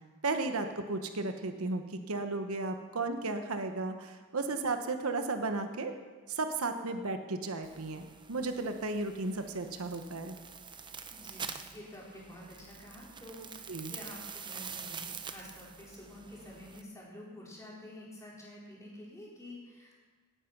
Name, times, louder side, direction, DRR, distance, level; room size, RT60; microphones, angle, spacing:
voice 1, 0.2-5.9 6.3-10.4 13.7-13.9, right 3 dB, 75° right, 7 dB, 1.0 m, -34 dB
sound 1, 7.6-16.8, right 6 dB, 20° right, 0.7 m, -46 dB
voice 2, 10.9-20.0, left 1 dB, 15° left, -5 dB, 4.2 m, -49 dB
17.5 x 9.2 x 6.0 m, 1.4 s
head